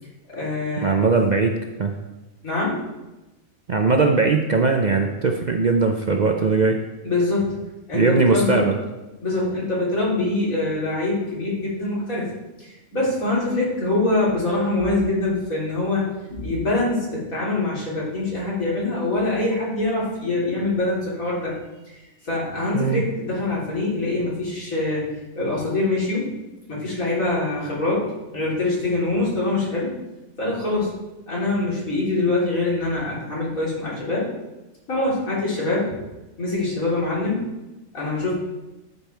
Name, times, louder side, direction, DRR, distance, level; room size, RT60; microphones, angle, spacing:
voice 1, 0.3-1.0 2.4-2.8 7.0-7.6 7.9-8.7 9.2-12.3 12.6-21.6 21.9-25.1 25.3-26.3 26.7-29.9 30.4-30.9 31.3-34.3 34.9-35.9 36.4-37.5 37.9-38.3, left 2 dB, 85° left, -7 dB, 4.1 m, -24 dB
voice 2, 0.8-1.9 3.7-6.8 7.9-8.8 22.7-23.0, right 4 dB, 45° right, 3 dB, 0.6 m, -20 dB
12.5 x 5.4 x 4.5 m, 1.0 s
omnidirectional pair, 1.4 m